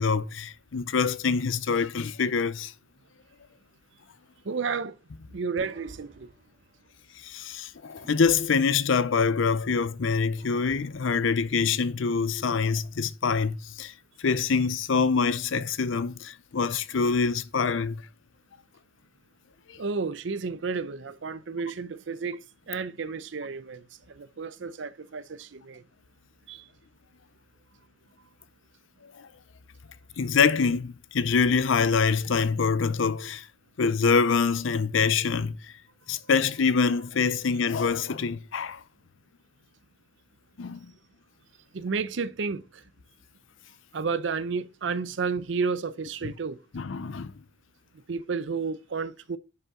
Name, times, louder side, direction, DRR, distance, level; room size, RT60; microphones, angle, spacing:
voice 1, 0.0-2.7 7.2-18.0 19.7-19.8 29.0-29.3 30.2-33.5 33.8-35.7 36.1-38.8 40.6-40.9 46.2-46.3 46.7-47.3, left 5 dB, 80° left, 0.6 m, -25 dB
voice 2, 4.4-5.0 5.3-6.3 19.8-25.8 26.5-26.6 41.7-42.8 43.9-46.6 48.1-49.4, right 5 dB, 70° right, 0.6 m, -32 dB
sound 1, 5.6-7.5 8.0-9.8 10.4-12.1, right 1 dB, 45° right, 1.7 m, -54 dB
10.5 x 5.4 x 3.7 m
head